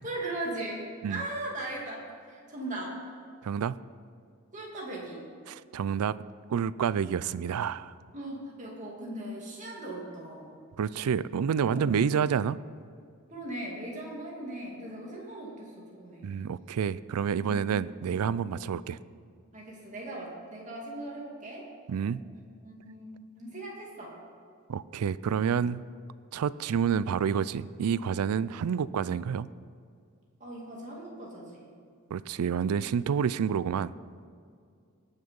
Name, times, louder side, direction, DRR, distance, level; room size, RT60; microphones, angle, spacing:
voice 1, 0.0-3.0 4.5-5.2 8.1-10.5 11.7-11.9 13.3-16.3 18.5-18.7 19.5-21.7 22.6-24.1 30.4-31.7, right 1 dB, 35° right, -3 dB, 2.5 m, -39 dB
voice 2, 3.4-3.7 5.5-6.2 6.5-7.9 10.8-12.6 16.2-19.0 21.9-22.2 24.7-25.8 26.3-29.5 32.1-33.9, right 7 dB, 85° right, 18 dB, 0.4 m, -28 dB
19.0 x 6.6 x 5.3 m, 2.3 s
head